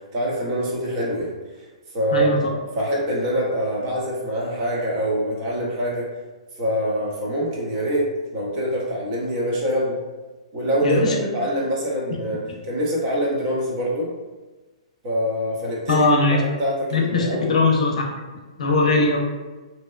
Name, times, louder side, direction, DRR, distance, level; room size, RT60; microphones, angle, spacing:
voice 1, 0.1-1.3 1.9-6.1 6.6-10.0 10.5-14.1 15.0-17.5, equal, 40° right, -3 dB, 0.7 m, -24 dB
voice 2, 10.8-11.2 15.9-16.4 16.9-18.2 18.6-19.2, left 3 dB, 75° left, 0 dB, 0.5 m, -20 dB
2.6 x 2.2 x 2.2 m, 1.2 s
hypercardioid pair, 140°, 4 cm